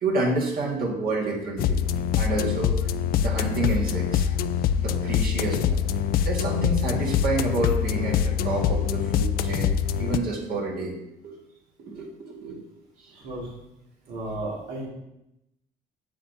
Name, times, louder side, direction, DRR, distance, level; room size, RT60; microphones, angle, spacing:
voice 1, 0.0-1.8 2.1-2.8 3.2-4.3 4.8-5.8 6.2-11.4 11.9-12.6, right 2 dB, 60° right, -2 dB, 2.0 m, -29 dB
sound 1, 1.6-10.2, left 8 dB, 60° left, 0.4 m, -24 dB
voice 2, 13.1-13.5 14.1-14.9, right 1 dB, 80° right, -4 dB, 2.5 m, -33 dB
8.2 x 7.5 x 2.8 m, 0.85 s
cardioid pair, 110°, 17 cm